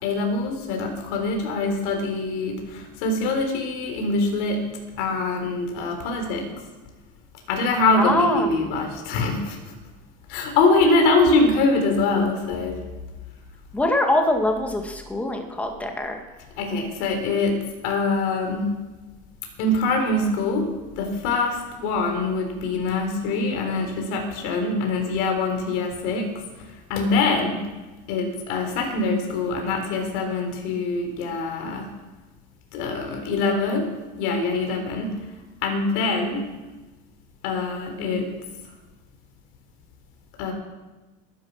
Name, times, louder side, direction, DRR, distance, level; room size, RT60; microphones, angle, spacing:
voice 1, 0.0-4.7 5.0-6.5 7.5-9.7 10.3-12.8 16.6-18.7 19.6-20.7 21.0-26.3 26.9-27.7 28.1-31.9 32.7-33.9 34.2-35.2 35.6-36.5 37.4-38.3 40.4-40.5, left 3 dB, 75° left, 3 dB, 3.8 m, -24 dB
voice 2, 8.0-8.7 13.7-16.2, left 1 dB, 5° left, 3 dB, 2.0 m, -23 dB
19.5 x 11.0 x 6.0 m, 1.2 s
cardioid pair, 140°, 19 cm